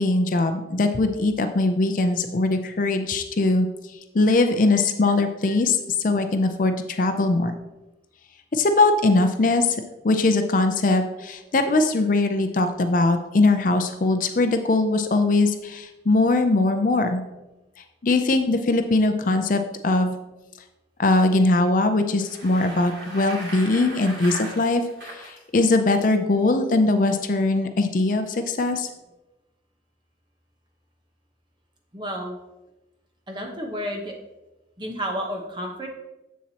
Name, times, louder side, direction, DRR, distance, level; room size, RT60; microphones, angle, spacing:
voice 1, 0.0-3.7 4.1-7.5 8.5-9.8 10.0-17.2 18.0-20.2 21.0-28.9, left 2 dB, 45° left, 7 dB, 0.5 m, -21 dB
Bicycle, 22.1-25.4, right 2 dB, 75° right, 2.7 m, -38 dB
voice 2, 31.9-32.4 33.3-34.1 34.8-35.9, equal, 25° right, 1 dB, 1.0 m, -31 dB
7.4 x 7.1 x 2.9 m, 1.0 s
head